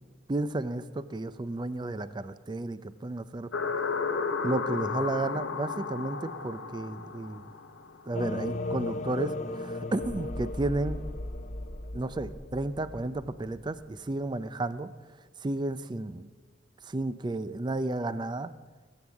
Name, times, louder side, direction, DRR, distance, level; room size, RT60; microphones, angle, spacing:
voice 1, 0.3-3.5 4.4-7.5 8.1-11.0 11.9-14.9 15.4-16.3 16.8-18.5, right 2 dB, 25° right, 14 dB, 0.4 m, -32 dB
sound 1, 3.5-8.2, left 5 dB, 80° left, 0.9 m, -33 dB
sound 2, 8.1-13.8, left 2 dB, 40° left, 0.7 m, -36 dB
17.0 x 7.9 x 7.2 m, 1.4 s
head